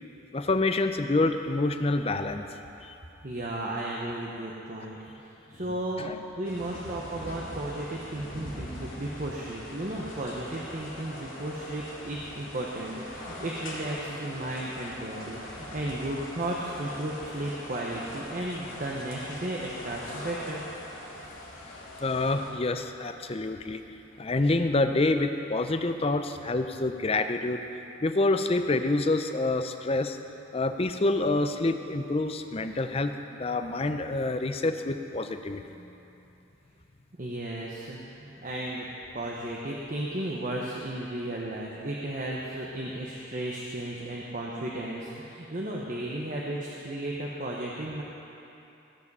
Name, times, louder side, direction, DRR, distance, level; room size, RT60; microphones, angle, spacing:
voice 1, 0.3-2.4 2.8-2.9 6.0-6.2 22.0-23.8 24.2-27.6 28.0-30.2 30.5-35.6, left 2 dB, 30° left, 8 dB, 0.5 m, -27 dB
voice 2, 3.2-20.7 37.2-38.9 39.1-48.0, right 1 dB, 40° right, -3 dB, 1.0 m, -34 dB
sound 1, 6.4-22.5, left 1 dB, 80° left, 2.6 m, -42 dB
17.0 x 7.5 x 5.5 m, 2.9 s
head